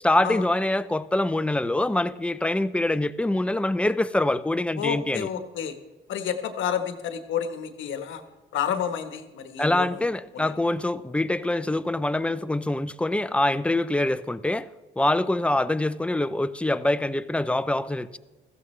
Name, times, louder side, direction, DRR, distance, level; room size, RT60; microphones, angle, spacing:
voice 1, 0.0-5.3 9.6-14.7 15.0-18.2, left 1 dB, 5° left, 14 dB, 0.5 m, -25 dB
voice 2, 4.8-5.7 6.1-8.2 8.5-10.0 10.3-10.6, left 8 dB, 75° left, 8 dB, 1.2 m, -30 dB
15.5 x 14.5 x 3.2 m, 1.1 s
cardioid pair, 90°, 20 cm